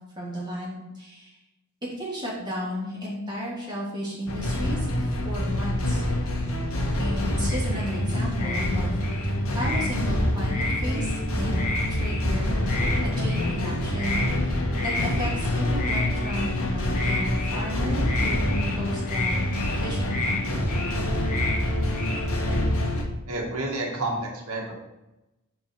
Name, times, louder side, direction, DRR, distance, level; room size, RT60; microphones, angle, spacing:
voice 1, 0.2-1.3 2.0-6.0 7.0-9.0 9.5-12.6 13.0-19.4 19.8-20.4, equal, 20° right, -7 dB, 3.4 m, -34 dB
sound 1, 4.3-23.0, left 1 dB, 65° left, 1.6 m, -26 dB
sound 2, 7.5-8.0 8.4-8.7 9.0-9.9 10.5-11.2 11.5-12.3 12.7-13.0 13.2-13.6 13.9-14.3 14.7-15.4 15.8-16.6 16.9-17.6 18.0-18.8 19.1-19.8 20.1-20.4 20.7-21.0 21.2-21.6 21.9-22.6, left 3 dB, 35° left, 1.4 m, -32 dB
voice 2, 23.3-24.7, right 2 dB, 70° right, 0 dB, 1.9 m, -30 dB
10.5 x 4.5 x 4.6 m, 0.96 s
head